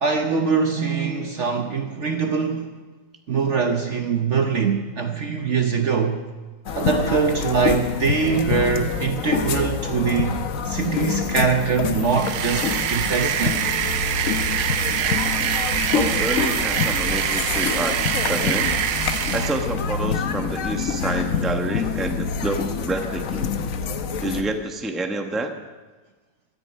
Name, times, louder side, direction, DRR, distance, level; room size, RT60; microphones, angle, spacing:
voice 1, 0.0-2.7 3.3-6.2 6.7-10.4 10.6-13.6, right 5 dB, 50° right, 1.0 m, -23 dB
sound 1, 6.7-24.4, left 6 dB, 55° left, 1.1 m, -26 dB
sound 2, 12.0-19.7, right 9 dB, 90° right, 1.5 m, -25 dB
voice 2, 15.9-18.0 18.3-18.7 19.3-23.5 24.2-25.5, right 2 dB, ahead, 0.8 m, -28 dB
17.5 x 13.5 x 5.5 m
omnidirectional pair, 1.9 m